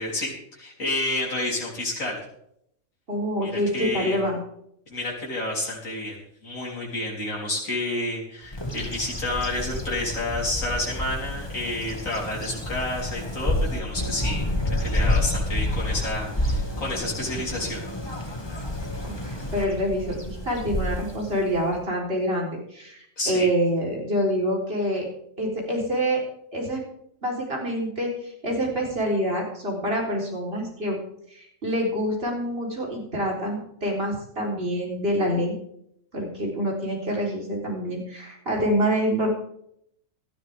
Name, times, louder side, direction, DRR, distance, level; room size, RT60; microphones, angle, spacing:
voice 1, 0.0-2.2 3.4-4.2 4.9-17.8 23.2-23.5, left 2 dB, 80° left, -5 dB, 4.2 m, -30 dB
voice 2, 3.1-4.4 19.0-25.1 25.4-26.2 26.5-26.8 27.2-31.0 31.3-35.5 36.1-39.3, equal, 45° right, -2 dB, 4.1 m, -26 dB
Bird vocalization bird call bird song, 8.5-21.8, left 1 dB, 20° left, 1.9 m, -29 dB
18.5 x 13.0 x 3.6 m, 0.73 s
omnidirectional pair, 1.4 m